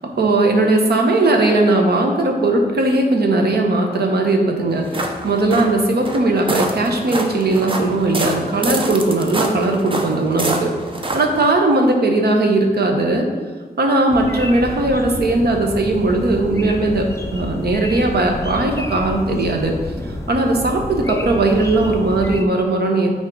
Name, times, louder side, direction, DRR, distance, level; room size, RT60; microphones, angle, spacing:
voice 1, 0.2-10.7 11.1-13.3 13.8-19.7 20.0-23.1, right 2 dB, 75° right, 2 dB, 1.0 m, -18 dB
sound 1, 4.7-11.5, right 2 dB, 30° right, 0.7 m, -26 dB
sound 2, 14.1-22.4, left 2 dB, 15° left, 0.5 m, -29 dB
9.2 x 4.1 x 3.8 m, 1.4 s
wide cardioid pair, 150°, 17 cm